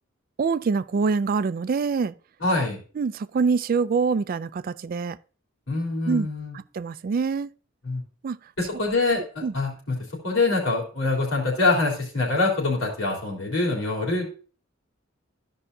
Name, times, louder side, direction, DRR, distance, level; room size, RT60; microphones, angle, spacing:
voice 1, 0.4-2.1 3.0-5.2 6.1-6.3 6.5-7.5 8.2-8.4 9.4-9.5, right 5 dB, 45° right, 0.3 m, -25 dB
voice 2, 2.4-2.8 5.7-6.6 7.8-8.0 8.6-10.0 10.2-14.2, left 3 dB, 75° left, 3.4 m, -24 dB
14.0 x 5.5 x 2.7 m
head